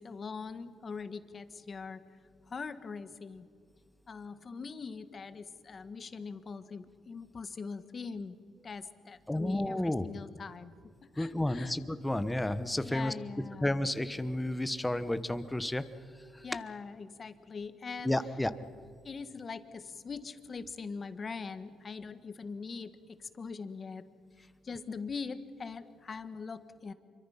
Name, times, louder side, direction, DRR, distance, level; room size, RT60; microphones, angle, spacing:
voice 1, 0.0-2.0 2.5-3.5 4.1-8.4 8.6-11.7 12.8-13.7 16.4-18.1 19.0-24.0 24.6-26.9, left 5 dB, 40° left, 12 dB, 1.3 m, -42 dB
voice 2, 9.3-10.1 11.2-13.1 13.6-15.8 16.3-16.4 18.0-18.5, left 1 dB, 10° left, 12 dB, 1.1 m, -31 dB
26.5 x 24.0 x 5.8 m, 2.2 s
cardioid pair, 90°, 0 cm